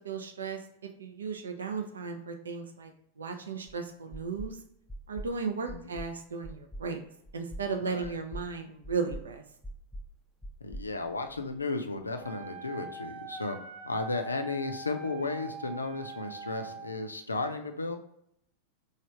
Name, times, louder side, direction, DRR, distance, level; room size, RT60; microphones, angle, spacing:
voice 1, 0.0-4.6 5.1-7.0 7.3-9.4, right 5 dB, 70° right, 5 dB, 0.4 m, -35 dB
sound 1, 3.7-3.8 4.1-4.6 4.9-5.3 5.7-6.1 6.4-6.9 7.3-7.7 8.0-8.5 8.8-9.3 9.6-10.1 10.4-11.6, right 1 dB, 5° left, 0.4 m, -42 dB
voice 2, 7.8-8.1 10.6-13.6 13.8-18.0, left 3 dB, 80° left, 6 dB, 0.4 m, -34 dB
Wind instrument woodwind instrument, 12.2-17.0, right 4 dB, 35° right, 0.8 m, -43 dB
3.2 x 2.3 x 4.3 m, 0.74 s
figure-of-eight pair, 90°, 0 cm